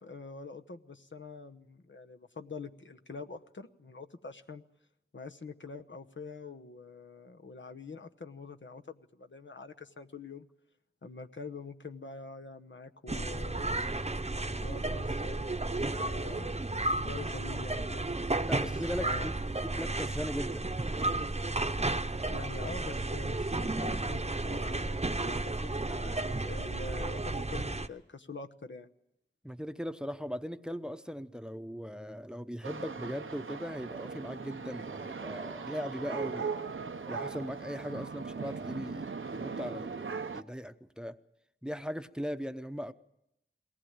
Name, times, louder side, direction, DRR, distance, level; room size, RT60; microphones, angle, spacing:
voice 1, 0.0-4.6 5.1-10.5 11.0-13.9 14.6-18.1 18.6-18.7 19.0-19.3 22.3-28.9, left 4 dB, 70° left, 6 dB, 1.0 m, -45 dB
sound 1, 13.1-27.9, right 2 dB, 35° right, 0.9 m, -33 dB
voice 2, 18.5-19.3 19.6-20.7 29.4-36.5 37.1-41.2 41.6-42.9, equal, 5° right, 10 dB, 0.8 m, -39 dB
sound 2, 32.6-40.4, right 5 dB, 85° right, 0.8 m, -39 dB
21.5 x 18.5 x 8.8 m, 0.85 s
wide cardioid pair, 50°, 20 cm